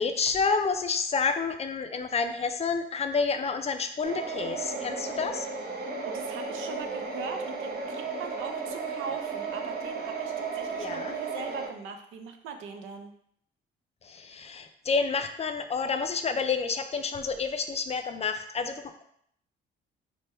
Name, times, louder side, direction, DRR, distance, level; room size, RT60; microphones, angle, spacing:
voice 1, 0.0-5.5 10.8-11.1 14.0-19.0, left 5 dB, 30° left, 7 dB, 0.4 m, -29 dB
sound 1, 4.0-11.7, right 4 dB, 50° right, 0.8 m, -34 dB
voice 2, 6.0-13.1, right 5 dB, 90° right, 6 dB, 0.5 m, -41 dB
3.3 x 2.2 x 4.2 m, 0.68 s
cardioid pair, 90°, 20 cm